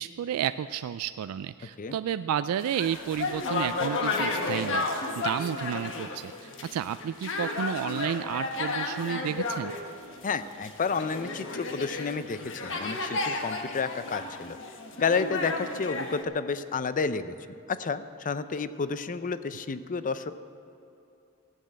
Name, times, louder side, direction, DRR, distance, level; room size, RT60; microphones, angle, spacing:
voice 1, 0.0-9.7, right 9 dB, 75° right, 13 dB, 0.3 m, -31 dB
sound 1, 2.6-16.2, left 3 dB, 60° left, 1.3 m, -33 dB
voice 2, 10.2-14.6 15.0-17.3 17.7-20.3, left 5 dB, 35° left, 12 dB, 0.5 m, -30 dB
15.0 x 9.0 x 7.5 m, 2.8 s
head